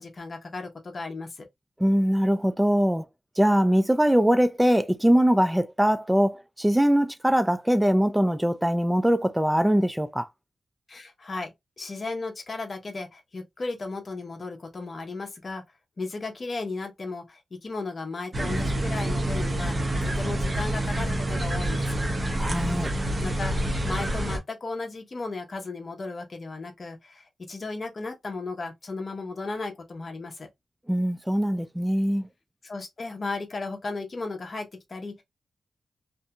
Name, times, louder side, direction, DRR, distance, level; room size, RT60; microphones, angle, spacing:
voice 1, 0.0-1.5 10.9-15.6 16.0-22.0 23.2-30.5 32.6-35.2, left 3 dB, 50° left, 0.8 m, -35 dB
voice 2, 1.8-3.0 3.4-10.3 22.4-22.9 30.9-32.3, equal, 5° right, 0.4 m, -22 dB
sound 1, 18.3-24.4, right 1 dB, 35° right, 0.9 m, -27 dB
2.6 x 2.6 x 2.2 m
cardioid pair, 60°, 0 cm